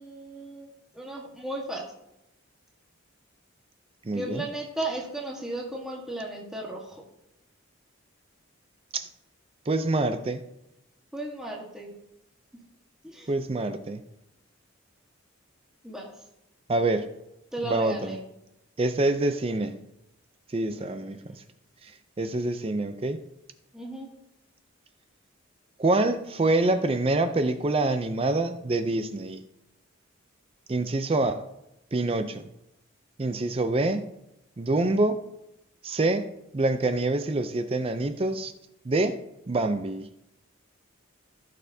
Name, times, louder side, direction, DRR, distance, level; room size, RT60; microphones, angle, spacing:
voice 1, 0.0-1.8 4.1-7.0 11.1-11.9 12.5-12.6 13.0-13.3 15.8-16.1 17.5-18.2 20.7-21.4 23.7-24.1, right 1 dB, 5° right, -2 dB, 1.4 m, -35 dB
voice 2, 4.0-4.5 8.9-9.1 9.7-10.4 13.3-14.0 16.7-17.1 17.6-18.2 18.8-19.8 20.5-21.3 21.8-21.9 22.2-23.2 25.8-29.4 30.7-31.4 31.9-32.4 33.2-34.1 34.6-35.2 35.8-36.3 36.5-38.5 38.8-39.2 39.5-40.1, right 2 dB, 25° right, 9 dB, 0.5 m, -26 dB
15.0 x 6.6 x 2.7 m, 0.85 s
head